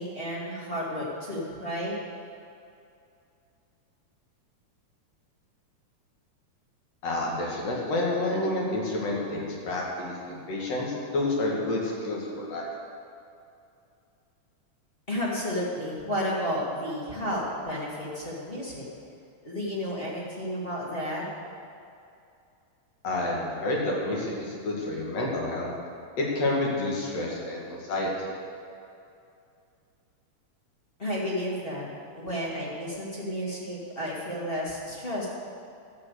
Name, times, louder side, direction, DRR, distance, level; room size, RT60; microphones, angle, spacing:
voice 1, 0.0-1.9 15.1-18.9 19.4-21.3 31.0-31.9 32.1-35.3, equal, 20° left, -6 dB, 2.4 m, -32 dB
voice 2, 7.0-12.7 23.0-25.7 26.2-28.1, left 2 dB, 60° left, -3 dB, 3.4 m, -29 dB
13.0 x 8.7 x 6.7 m, 2.6 s
omnidirectional pair, 3.3 m